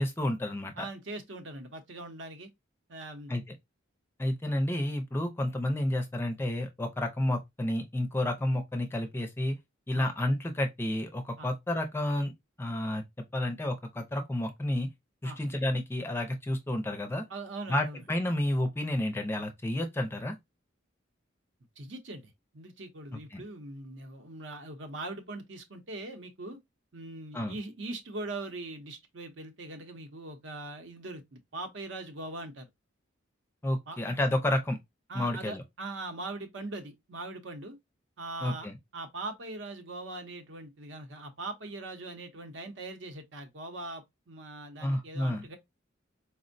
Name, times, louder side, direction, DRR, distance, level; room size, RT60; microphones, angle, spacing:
voice 1, 0.0-0.9 3.3-3.4 4.2-9.6 9.9-12.3 12.6-13.0 13.3-14.9 15.2-17.2 17.7-20.3 23.3-23.4 27.3-27.5 33.6-34.8 35.1-35.6 38.4-38.7 44.8-45.5, left 1 dB, 10° left, 0.4 m, -30 dB
voice 2, 0.8-2.5 2.9-3.3 9.9-10.1 11.4-11.5 15.2-15.5 17.3-18.0 21.8-26.6 26.9-32.7 33.9-34.0 35.1-37.8 38.2-45.6, right 2 dB, 65° right, 0.7 m, -41 dB
4.3 x 2.1 x 2.5 m
head